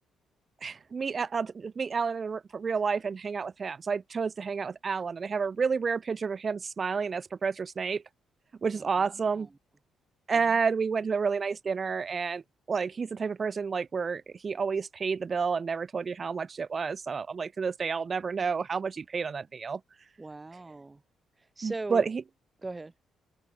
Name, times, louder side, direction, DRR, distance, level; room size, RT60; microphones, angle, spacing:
voice 1, 0.6-8.0 8.6-9.5 10.3-12.4 12.7-19.8 21.6-22.2, right 5 dB, 40° right, 1.2 m, -30 dB
voice 2, 8.8-9.5 10.3-10.5 20.2-21.0 21.4-22.0 22.6-22.9, right 2 dB, 20° right, 0.7 m, -40 dB
cardioid pair, 90°, 0 cm